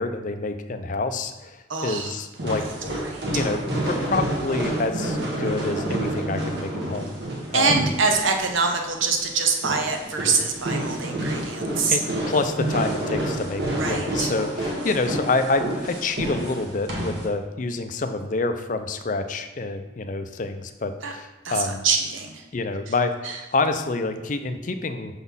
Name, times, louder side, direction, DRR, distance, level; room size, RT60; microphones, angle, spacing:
voice 1, 0.0-2.6 3.3-7.2 7.5-7.9 11.9-12.0 12.3-21.9 22.5-25.2, left 3 dB, 40° left, 8 dB, 0.5 m, -27 dB
voice 2, 1.7-2.1 3.0-3.2 7.5-12.0 13.8-14.3 21.0-21.1 21.4-22.4 23.2-23.4, right 4 dB, 80° right, 3 dB, 0.9 m, -24 dB
sound 1, 2.4-17.3, right 1 dB, 60° right, 1.3 m, -29 dB
6.0 x 4.1 x 5.5 m, 1.1 s
head